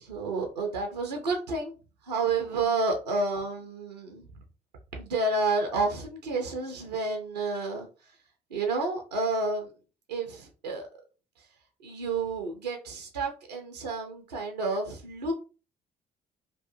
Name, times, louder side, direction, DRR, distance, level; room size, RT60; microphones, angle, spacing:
voice 1, 0.0-1.7 2.0-4.3 4.9-7.9 8.5-9.7 10.1-10.9 11.8-15.3, right 3 dB, 90° right, 0.4 m, -30 dB
2.7 x 2.3 x 2.6 m
figure-of-eight pair, 45°, 20 cm